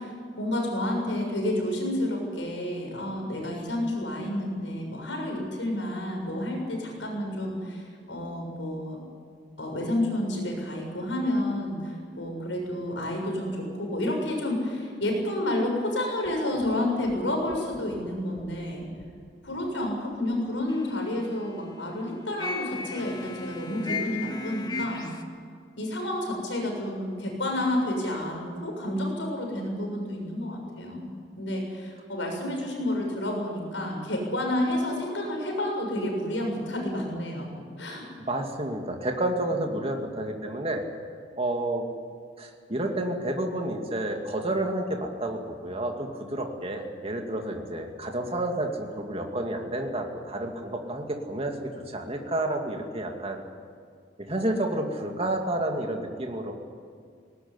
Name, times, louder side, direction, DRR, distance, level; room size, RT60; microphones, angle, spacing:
voice 1, 0.0-9.0 9.6-18.8 19.4-25.1 25.8-31.1 31.4-37.5 37.8-38.1, left 1 dB, 90° left, 1 dB, 7.0 m, -30 dB
sound 1, 16.3-20.3 20.7-21.6 22.4-25.2, left 3 dB, 20° left, 1.6 m, -38 dB
voice 2, 38.3-40.8 41.4-41.8 42.4-53.4 54.2-56.5, right 1 dB, 35° right, 2 dB, 2.4 m, -30 dB
19.5 x 19.0 x 9.8 m, 2.2 s
head